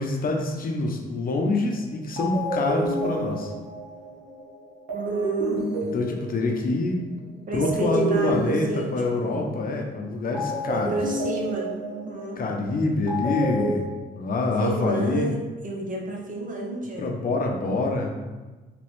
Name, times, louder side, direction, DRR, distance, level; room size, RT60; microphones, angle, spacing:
voice 1, 0.0-3.5 5.8-7.1 7.5-11.1 12.4-13.9 14.1-15.4 17.0-18.1, left 3 dB, 45° left, 2 dB, 0.6 m, -26 dB
sound 1, 1.7-1.8 2.2-7.1 7.6-9.8 10.3-13.8, right 1 dB, 65° right, 1.2 m, -29 dB
voice 2, 4.9-5.6 7.5-8.9 9.2-9.4 10.7-12.4 14.6-17.1, right 2 dB, 40° right, -1 dB, 0.9 m, -32 dB
3.3 x 3.0 x 3.1 m, 1.3 s
cardioid pair, 90°, 20 cm